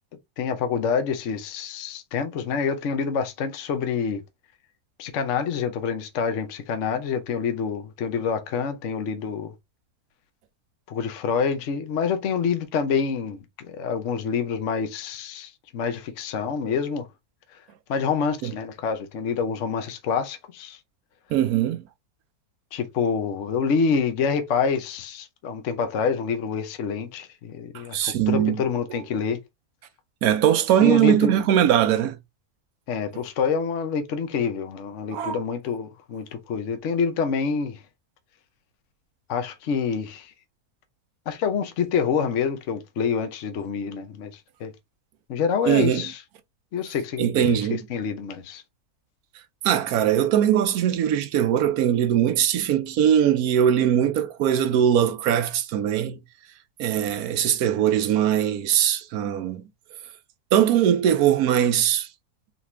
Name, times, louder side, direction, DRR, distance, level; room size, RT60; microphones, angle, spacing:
voice 1, 0.4-4.2 5.0-9.5 10.9-17.1 17.9-20.8 22.7-29.4 30.8-31.3 32.9-37.8 39.3-40.3 41.3-44.3 44.6-44.7 45.3-46.2 46.7-48.6, left 6 dB, 55° left, 1.0 m, -27 dB
voice 2, 21.3-21.8 27.7-28.6 28.9-29.0 30.2-32.2 35.1-35.4 45.6-46.1 47.2-47.8 49.6-56.2 56.8-59.7 60.5-62.1, right 10 dB, 70° right, 1.1 m, -21 dB
4.1 x 3.0 x 3.3 m
omnidirectional pair, 1.7 m